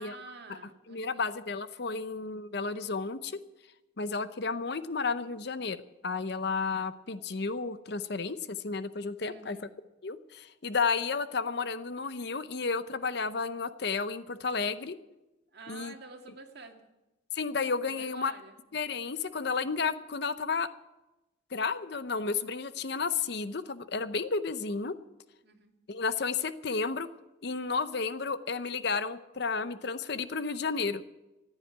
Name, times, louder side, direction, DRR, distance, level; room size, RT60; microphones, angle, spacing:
voice 1, 0.0-1.3 9.2-9.7 15.5-16.8 17.8-18.6 25.4-25.8, right 4 dB, 55° right, 3 dB, 2.1 m, -49 dB
voice 2, 0.9-3.4 4.0-9.6 10.0-15.0 15.7-15.9 17.3-18.3 18.7-20.7 21.5-24.9 25.9-27.1 27.4-31.1, left 4 dB, 55° left, 13 dB, 0.7 m, -32 dB
14.5 x 9.8 x 9.6 m, 1.0 s
head